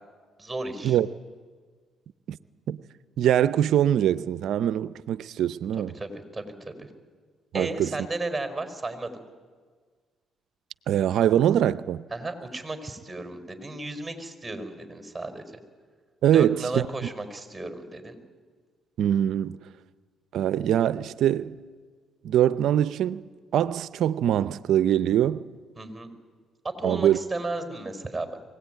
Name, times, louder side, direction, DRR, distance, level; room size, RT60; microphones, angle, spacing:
voice 1, 0.4-1.0 5.7-6.9 7.5-9.2 12.1-15.5 16.3-18.2 25.8-26.1 26.8-28.4, right 2 dB, 10° right, 5.0 m, -34 dB
voice 2, 3.2-5.9 7.5-8.0 10.9-12.0 16.2-16.8 19.0-19.6 20.3-21.6 22.2-23.2 23.5-25.4 26.8-27.2, right 10 dB, 75° right, 0.6 m, -23 dB
24.0 x 17.5 x 9.3 m
supercardioid pair, 65°, 0 cm